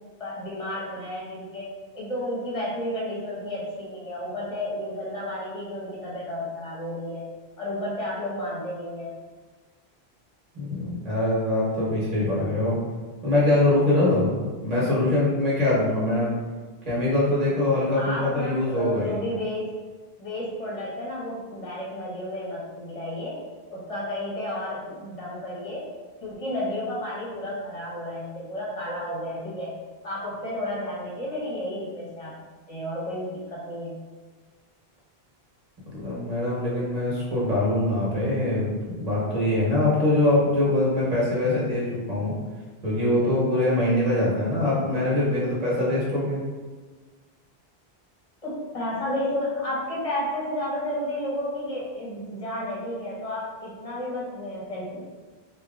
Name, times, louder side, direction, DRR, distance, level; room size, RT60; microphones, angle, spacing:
voice 1, 0.2-1.6 1.9-7.2 7.6-9.1 17.9-19.7 20.2-23.4 23.7-25.8 26.2-29.7 30.0-32.3 32.7-33.9 48.4-55.0, left 1 dB, 35° left, -6 dB, 1.1 m, -32 dB
voice 2, 10.5-12.8 13.2-16.3 16.9-19.2 35.9-42.3 42.8-46.4, left 1 dB, 40° right, -6 dB, 1.1 m, -23 dB
2.9 x 2.4 x 3.6 m, 1.4 s
omnidirectional pair, 1.0 m